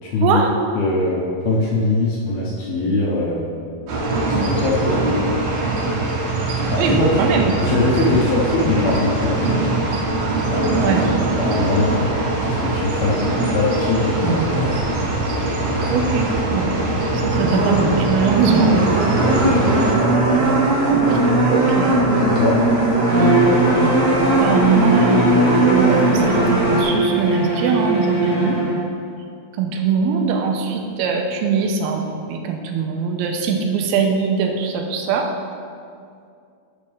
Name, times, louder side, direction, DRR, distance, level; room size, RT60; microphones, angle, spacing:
voice 1, 0.0-0.4 0.8-3.4 4.3-5.0 6.7-7.1 7.6-9.5 11.4-12.1 12.4-14.7 19.2-19.7 22.3-22.6, left 3 dB, 75° left, -5 dB, 2.8 m, -21 dB
sound 1, 3.9-19.9, right 2 dB, 70° right, 3.3 m, -22 dB
voice 2, 6.8-7.7 10.8-11.0 15.9-16.7 17.1-18.7 21.1-21.2 21.5-22.0 24.4-28.6 29.6-35.3, right 5 dB, 90° right, 3 dB, 2.6 m, -21 dB
sound 2, 14.2-26.8, right 2 dB, 55° right, 2.3 m, -19 dB
Bowed string instrument, 23.0-28.8, right 1 dB, 30° left, 2.5 m, -21 dB
11.5 x 6.6 x 3.5 m, 2.3 s
omnidirectional pair, 4.4 m